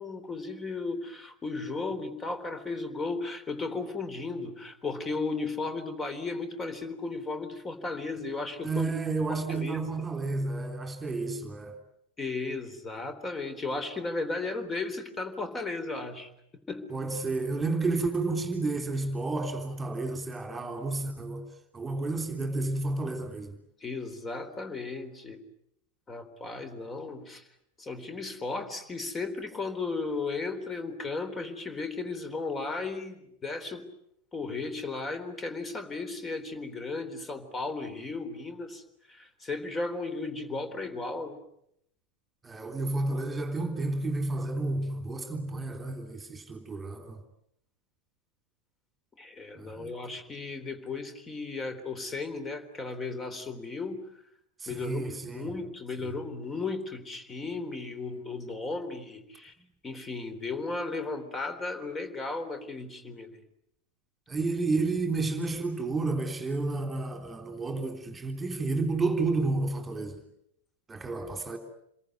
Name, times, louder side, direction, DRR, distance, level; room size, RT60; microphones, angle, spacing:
voice 1, 0.0-8.9 9.3-9.8 12.2-16.3 16.7-16.9 23.8-25.4 26.1-27.4 27.8-33.8 34.3-38.8 39.1-41.4 49.2-54.0 54.7-59.5 59.8-63.4, left 3 dB, 15° left, 3.8 m, -35 dB
voice 2, 8.6-11.7 16.9-21.4 21.7-23.6 42.4-47.2 49.6-49.9 54.6-55.5 64.3-70.2 70.9-71.6, right 3 dB, 15° right, 3.3 m, -31 dB
28.5 x 22.5 x 9.3 m
figure-of-eight pair, 90°, 0 cm